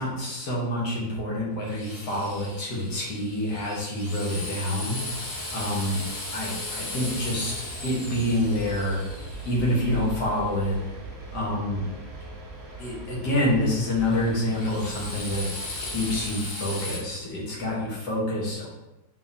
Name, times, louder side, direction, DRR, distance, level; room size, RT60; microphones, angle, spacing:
voice 1, 0.0-5.0 5.5-6.0 6.3-9.0 9.4-10.8 11.3-11.8 12.8-15.5 15.8-18.7, left 1 dB, 70° left, -5 dB, 1.7 m, -27 dB
Drill, 1.6-10.6 14.0-17.0, left 2 dB, 50° left, 0.7 m, -37 dB
sound 1, 4.9-16.4, right 2 dB, 45° right, 1.1 m, -40 dB
4.2 x 3.6 x 2.7 m, 0.97 s
omnidirectional pair, 1.9 m